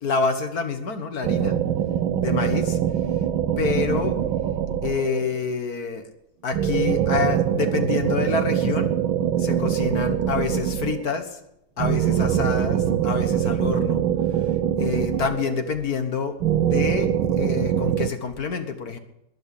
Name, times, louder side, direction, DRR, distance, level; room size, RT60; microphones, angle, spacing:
voice 1, 0.0-1.6 2.2-2.8 3.6-4.2 4.8-6.1 6.4-8.9 9.4-11.4 11.8-14.1 14.8-17.1 17.3-19.0, left 5 dB, 50° left, 8 dB, 1.6 m, -27 dB
sound 1, 1.2-5.4 6.5-11.2 11.8-15.8 16.4-18.1, right 10 dB, 70° right, 1.5 m, -23 dB
21.0 x 8.0 x 8.4 m, 0.84 s
omnidirectional pair, 2.4 m